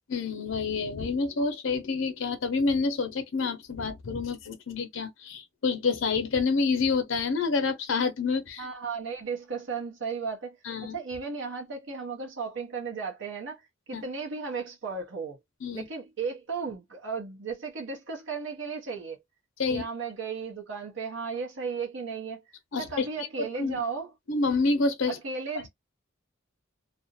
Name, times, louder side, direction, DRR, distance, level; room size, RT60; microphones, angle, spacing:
voice 1, 0.1-8.7 10.6-11.0 13.9-14.0 15.6-15.9 19.6-19.8 22.7-23.8 24.3-25.2 25.5-25.7, left 4 dB, 75° left, 0.7 m, -28 dB
voice 2, 8.6-10.6 10.9-13.6 13.9-15.4 15.7-19.2 19.7-22.4 22.8-24.1 25.1-25.7, right 5 dB, 70° right, 0.8 m, -35 dB
2.5 x 2.1 x 2.6 m
head